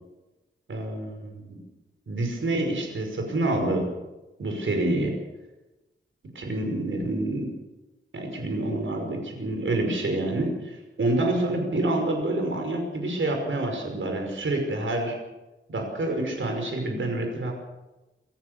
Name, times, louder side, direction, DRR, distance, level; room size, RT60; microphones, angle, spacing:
voice 1, 0.7-1.6 2.1-3.9 4.4-5.2 6.3-7.5 8.1-15.2 15.7-17.5, right 2 dB, 80° right, 3 dB, 5.6 m, -27 dB
27.0 x 14.5 x 6.9 m, 1.1 s
wide cardioid pair, 110°, 20 cm